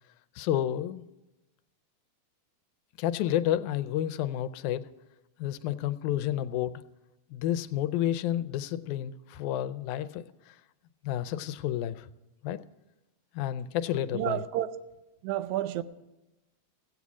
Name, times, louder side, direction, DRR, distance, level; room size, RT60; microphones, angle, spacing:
voice 1, 0.4-1.0 3.0-4.9 5.4-6.7 7.3-10.6 11.0-12.1 12.4-12.6 13.3-14.4, left 12 dB, 90° left, 2.0 m, -30 dB
voice 2, 14.1-14.7 15.2-15.8, right 13 dB, 80° right, 1.9 m, -30 dB
15.0 x 8.4 x 6.1 m
omnidirectional pair, 3.3 m